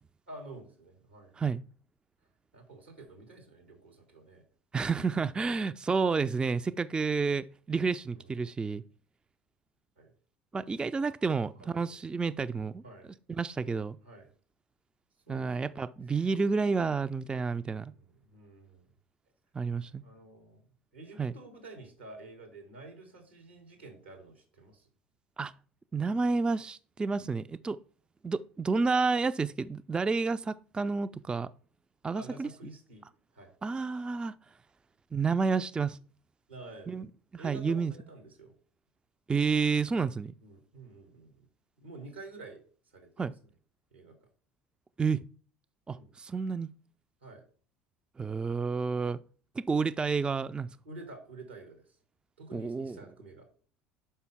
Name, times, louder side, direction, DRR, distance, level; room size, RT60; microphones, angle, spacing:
voice 1, 0.3-1.5 2.5-4.5 8.1-8.5 10.0-10.1 11.6-11.9 12.8-13.1 14.0-14.3 15.3-16.2 17.8-18.9 20.0-20.6 20.9-24.9 32.1-33.0 33.3-33.5 36.5-37.1 37.4-38.5 40.4-41.5 41.8-43.5 43.9-44.2 46.0-46.1 47.2-47.4 50.8-52.0 52.4-53.5, right 2 dB, 90° right, 2.5 m, -49 dB
voice 2, 4.7-8.8 10.5-12.8 13.3-14.0 15.3-17.9 19.5-20.0 21.2-21.3 25.4-25.5 25.9-27.8 28.2-31.5 32.0-32.5 33.6-34.3 35.1-36.0 36.9-37.1 37.3-37.9 39.3-40.3 43.2-43.3 45.0-45.2 45.9-46.7 48.2-49.2 49.6-50.7 52.5-53.0, right 4 dB, 15° right, 0.3 m, -30 dB
5.6 x 5.5 x 5.8 m
figure-of-eight pair, 65°, 6 cm